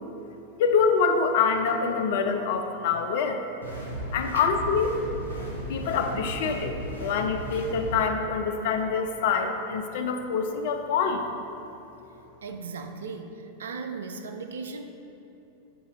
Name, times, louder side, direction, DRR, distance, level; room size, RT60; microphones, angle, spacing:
voice 1, 0.6-3.4 4.1-4.9 5.7-11.3, left 5 dB, 55° left, 5 dB, 0.5 m, -25 dB
sound 1, 3.6-8.0, equal, 80° right, 1.2 m, -35 dB
voice 2, 12.4-14.8, right 4 dB, 65° right, 6 dB, 0.4 m, -37 dB
6.9 x 4.0 x 3.7 m, 2.8 s
figure-of-eight pair, 90°, 0 cm